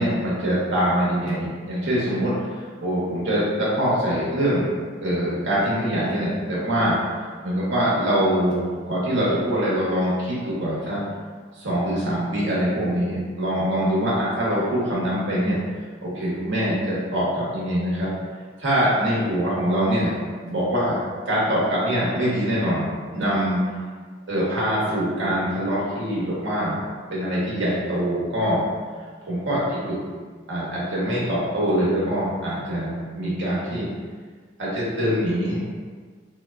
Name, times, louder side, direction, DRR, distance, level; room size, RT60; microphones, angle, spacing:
voice 1, 0.0-2.3 2.8-4.7 5.0-7.0 7.4-11.0 11.6-15.6 16.0-18.1 18.6-20.1 20.4-21.0 21.3-23.6 24.3-26.8 27.1-28.6 29.2-30.0 30.5-33.9 34.6-35.6, equal, 70° right, -7 dB, 1.0 m, -23 dB
3.4 x 2.1 x 2.4 m, 1.5 s
head